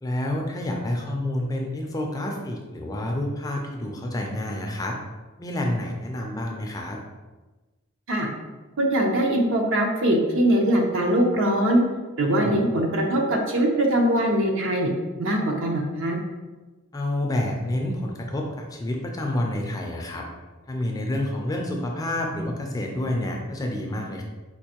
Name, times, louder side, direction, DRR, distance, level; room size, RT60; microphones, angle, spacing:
voice 1, 0.0-5.0 5.4-7.0 12.3-12.6 16.9-20.3 20.7-24.2, left 1 dB, 15° left, 1 dB, 0.3 m, -28 dB
voice 2, 8.8-11.8 12.2-14.9 15.2-16.2, right 1 dB, 60° right, 1 dB, 0.6 m, -22 dB
4.5 x 2.5 x 2.8 m, 1.2 s
head